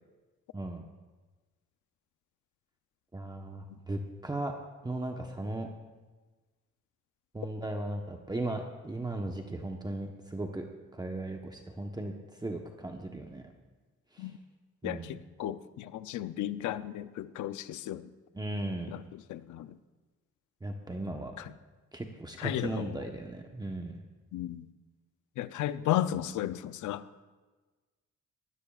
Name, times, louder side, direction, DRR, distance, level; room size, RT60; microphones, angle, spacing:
voice 1, 0.5-0.9 3.1-4.5 4.8-5.7 7.3-10.7 10.9-12.1 12.4-13.4 14.1-14.3 14.8-15.2 18.3-19.0 20.6-21.3 21.9-24.0, right 2 dB, 15° right, 3 dB, 1.1 m, -37 dB
voice 2, 14.8-18.1 18.9-19.0 19.3-19.8 22.4-22.9 24.3-24.7 25.4-27.0, left 12 dB, 75° left, 14 dB, 0.6 m, -34 dB
20.0 x 16.0 x 2.5 m, 1.3 s
cardioid pair, 90°, 30 cm